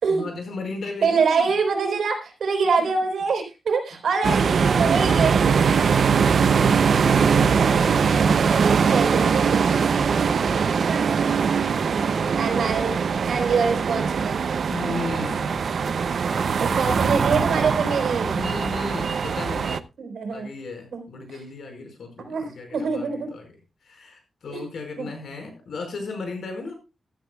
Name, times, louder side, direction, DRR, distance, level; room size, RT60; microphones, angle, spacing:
voice 1, 0.1-1.5 2.9-3.0 6.0-8.2 8.7-9.4 9.7-11.0 12.7-12.8 14.7-15.7 16.3-17.1 18.2-19.8 20.3-23.5 23.8-26.7, left 3 dB, 80° left, 4 dB, 5.1 m, -36 dB
voice 2, 1.0-5.8 8.2-9.8 11.9-14.4 16.8-18.4 20.0-20.5 20.9-21.0 22.2-23.3 24.5-24.6 25.0-25.1, right 5 dB, 90° right, 4 dB, 4.1 m, -25 dB
sound 1, 4.2-19.8, right 6 dB, 65° right, 0.5 m, -21 dB
15.5 x 13.5 x 2.3 m, 0.28 s
wide cardioid pair, 120°, 0 cm